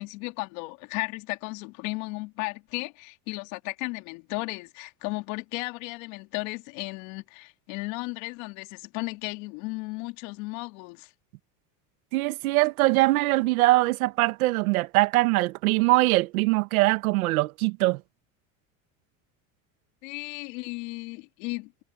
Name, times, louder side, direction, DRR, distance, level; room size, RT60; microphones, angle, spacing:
voice 1, 0.0-11.1 20.0-21.8, left 25 dB, 70° left, 3.1 m, -35 dB
voice 2, 12.1-18.0, right 20 dB, 85° right, 2.4 m, -22 dB
supercardioid pair, 135°, 42 cm